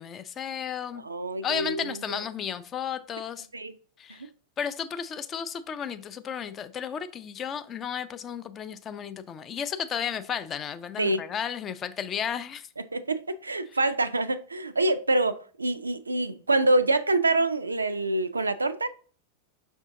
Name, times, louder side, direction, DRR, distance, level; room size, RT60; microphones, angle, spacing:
voice 1, 0.0-1.0 1.4-3.5 4.0-4.3 4.6-12.7, left 8 dB, 25° left, 0.4 m, -33 dB
voice 2, 1.0-2.2 3.5-3.7 11.0-11.2 12.9-18.9, right 2 dB, 80° right, 0.3 m, -26 dB
5.5 x 2.7 x 3.6 m
figure-of-eight pair, 90°, 0 cm